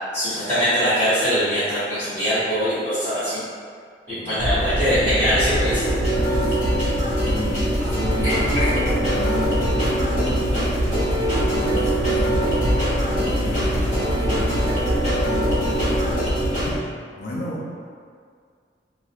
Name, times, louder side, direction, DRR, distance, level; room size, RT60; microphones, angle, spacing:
voice 1, 0.1-3.4 4.2-5.8 8.5-8.7 13.7-13.8, equal, 15° left, -19 dB, 1.1 m, -22 dB
voice 2, 4.1-4.4 6.5-10.9 11.3-12.7 13.4-14.6 17.1-17.9, left 1 dB, 65° left, -5 dB, 0.5 m, -33 dB
sound 1, 4.4-16.8, equal, 70° right, 0.4 m, -24 dB
sound 2, 5.5-16.7, right 1 dB, 45° left, 1.0 m, -25 dB
2.4 x 2.1 x 2.8 m, 2.1 s
head